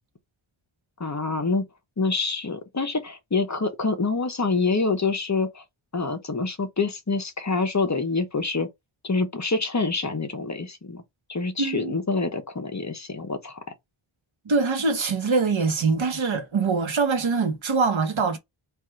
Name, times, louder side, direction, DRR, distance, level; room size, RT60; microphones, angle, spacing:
voice 1, 1.0-1.7 2.0-5.6 5.9-8.7 9.0-11.0 11.3-13.6, left 3 dB, 35° left, 0.8 m, -26 dB
voice 2, 11.6-11.9 14.4-18.4, right 4 dB, 65° right, 1.1 m, -23 dB
3.5 x 2.5 x 4.4 m
wide cardioid pair, 65°, 50 cm